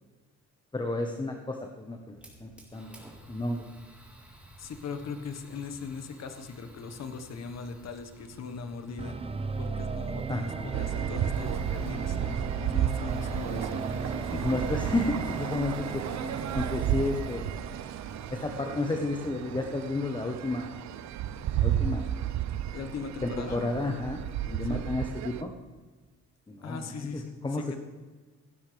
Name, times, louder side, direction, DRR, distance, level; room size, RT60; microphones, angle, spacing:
voice 1, 0.7-3.0 3.3-3.6 10.3-10.8 14.3-16.0 16.5-17.5 18.3-20.8 21.6-22.1 23.2-25.5 26.5-27.8, left 2 dB, 15° left, 3 dB, 1.1 m, -32 dB
Fire, 2.2-19.8, equal, 5° right, 4.0 m, -53 dB
voice 2, 4.6-9.2 9.6-13.8 14.2-14.5 22.7-23.6 24.7-24.8 26.6-27.8, left 5 dB, 60° left, 8 dB, 1.5 m, -39 dB
sound 1, 9.0-18.0, right 4 dB, 20° right, 0.6 m, -36 dB
street sounds in old city edinburgh, 10.7-25.4, right 11 dB, 65° right, 0.6 m, -33 dB
17.0 x 12.0 x 3.4 m, 1.4 s
cardioid pair, 90°, 30 cm